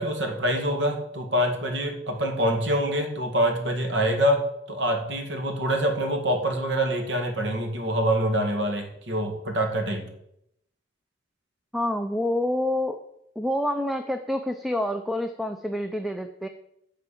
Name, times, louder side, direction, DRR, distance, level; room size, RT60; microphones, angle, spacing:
voice 1, 0.0-10.1, right 1 dB, 70° right, 4 dB, 2.0 m, -25 dB
voice 2, 11.7-13.0 13.4-16.5, left 1 dB, ahead, 7 dB, 0.4 m, -27 dB
10.0 x 4.7 x 7.5 m, 0.77 s
head